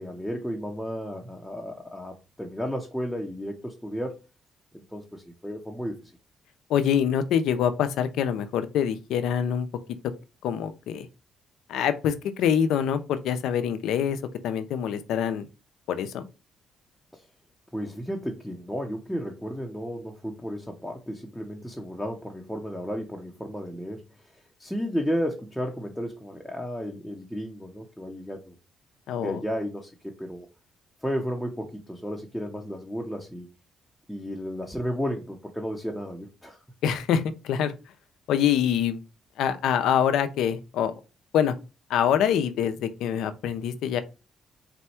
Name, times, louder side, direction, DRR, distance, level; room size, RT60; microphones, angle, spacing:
voice 1, 0.0-4.2 4.7-6.1 17.1-17.2 17.7-24.3 24.6-28.5 29.1-30.5 31.0-33.5 34.1-36.6, equal, ahead, 0.8 m, -33 dB
voice 2, 6.7-9.7 10.4-11.1 11.7-14.2 14.4-15.5 15.9-16.3 29.1-29.4 36.8-37.7 38.3-39.0 39.4-40.9 41.3-41.5 41.9-44.0, left 8 dB, 85° left, 0.5 m, -25 dB
4.1 x 2.2 x 4.3 m
cardioid pair, 90°, 0 cm